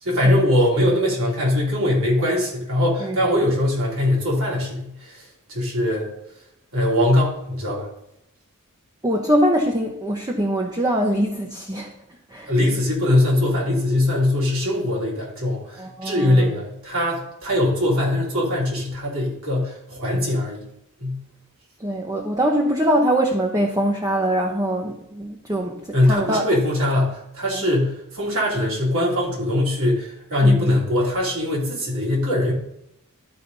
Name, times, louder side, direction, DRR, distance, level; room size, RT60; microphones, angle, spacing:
voice 1, 0.0-6.1 6.7-7.9 12.5-20.6 21.0-21.2 25.9-32.5, left 1 dB, 65° right, -4 dB, 3.3 m, -21 dB
voice 2, 9.0-11.9 12.3-12.5 15.8-16.5 21.8-26.4 27.5-27.6 30.4-30.7, right 1 dB, 15° right, 1 dB, 0.8 m, -23 dB
12.5 x 4.1 x 5.3 m, 0.81 s
head